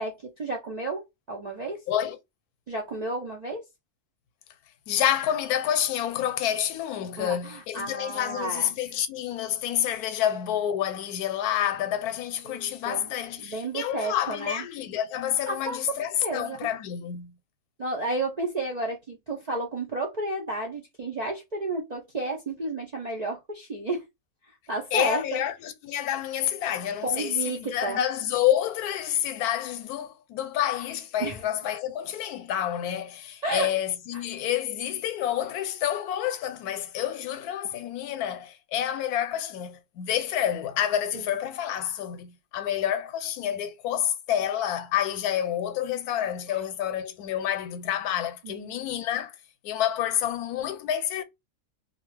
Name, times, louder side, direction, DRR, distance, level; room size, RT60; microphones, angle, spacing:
voice 1, 0.0-1.8 2.7-3.6 7.2-8.7 12.5-13.1 13.4-14.6 15.5-15.8 16.2-16.6 17.8-24.0 24.7-25.4 27.0-28.1 31.2-31.4 33.4-33.7 34.1-34.2 41.1-41.2 46.5-46.6 48.4-48.8, right 2 dB, 60° right, 0.4 m, -32 dB
voice 2, 1.9-2.2 4.9-17.3 24.9-49.4 49.6-51.2, left 10 dB, 90° left, 1.1 m, -28 dB
2.6 x 2.3 x 3.2 m
omnidirectional pair, 1.6 m